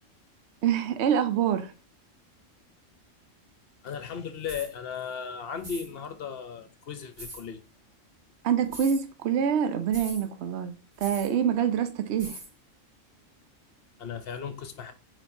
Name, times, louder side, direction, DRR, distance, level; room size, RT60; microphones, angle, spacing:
voice 1, 0.6-1.7 8.4-12.4, right 8 dB, 65° right, 0.9 m, -26 dB
voice 2, 3.8-7.6 14.0-14.9, left 7 dB, 55° left, 0.8 m, -36 dB
sound 1, 4.4-4.7 5.6-5.9 7.2-7.4 8.7-9.0 9.9-10.2 11.0-11.3 12.2-12.5, right 1 dB, 90° right, 2.5 m, -41 dB
4.4 x 4.4 x 2.5 m
omnidirectional pair, 1.4 m